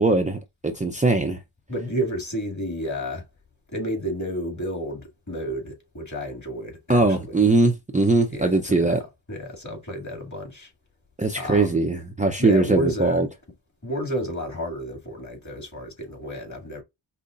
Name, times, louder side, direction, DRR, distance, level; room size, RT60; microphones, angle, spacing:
voice 1, 0.0-1.4 6.9-9.0 11.2-13.3, right 2 dB, 15° right, 0.7 m, -21 dB
voice 2, 1.7-3.2 3.7-7.4 8.3-9.0 9.3-10.7 11.4-11.8 12.4-13.3 13.8-16.8, equal, 35° left, 2.4 m, -31 dB
5.4 x 2.2 x 2.5 m
cardioid pair, 45°, 49 cm